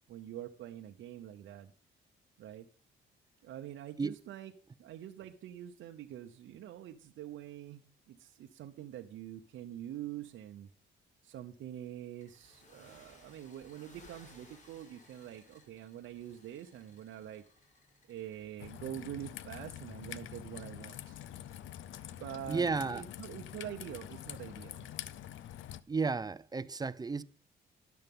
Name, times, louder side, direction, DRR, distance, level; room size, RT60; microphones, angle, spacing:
voice 1, 0.1-1.7 2.4-2.7 3.4-4.5 4.8-10.7 11.2-17.4 18.1-21.2 22.1-24.9, right 11 dB, 75° right, 0.8 m, -45 dB
sound 1, 12.2-18.5, left 2 dB, 40° left, 2.7 m, -61 dB
Raindrop / Trickle dribble, 18.6-25.8, left 11 dB, 75° left, 0.6 m, -46 dB
voice 2, 22.5-23.0 25.9-27.2, right 4 dB, 20° right, 0.5 m, -33 dB
10.5 x 6.7 x 5.4 m
cardioid pair, 90°, 20 cm